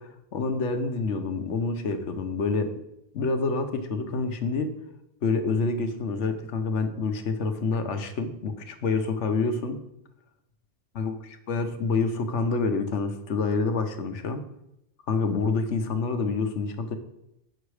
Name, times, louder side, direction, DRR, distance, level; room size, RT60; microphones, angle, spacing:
voice 1, 0.3-2.7 3.1-4.7 5.2-9.8 11.0-11.1 11.5-14.4 15.1-17.0, left 4 dB, 75° left, 7 dB, 1.2 m, -27 dB
7.8 x 6.0 x 4.8 m, 0.83 s
omnidirectional pair, 1.2 m